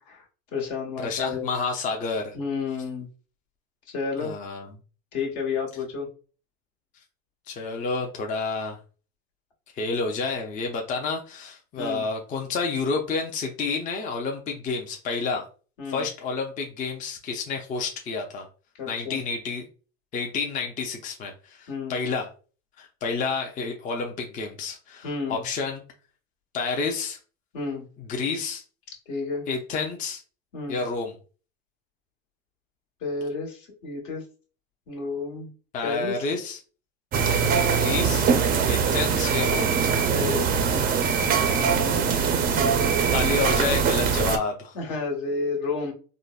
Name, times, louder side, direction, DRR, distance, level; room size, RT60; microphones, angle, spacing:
voice 1, 0.5-1.5 2.3-3.1 3.9-4.3 5.1-6.1 11.8-12.0 15.8-16.1 18.8-19.2 21.7-22.0 25.0-25.4 27.5-27.9 29.1-29.5 30.5-30.8 33.0-34.2 34.9-35.5 35.8-36.1 40.1-40.5 44.7-45.9, left 4 dB, 65° left, 0 dB, 1.3 m, -30 dB
voice 2, 1.0-2.4 4.2-4.7 7.5-8.8 9.7-15.4 15.9-18.5 18.9-19.6 20.1-22.3 22.8-25.8 26.5-27.2 28.1-28.6 29.5-30.2 30.7-31.2 35.7-36.6 37.5-38.3 38.6-39.7 43.1-44.8, left 4 dB, 25° left, 2 dB, 0.5 m, -29 dB
sound 1, 37.1-44.4, right 6 dB, 30° right, 0.4 m, -22 dB
3.8 x 2.0 x 2.3 m, 0.37 s
supercardioid pair, 115°, 31 cm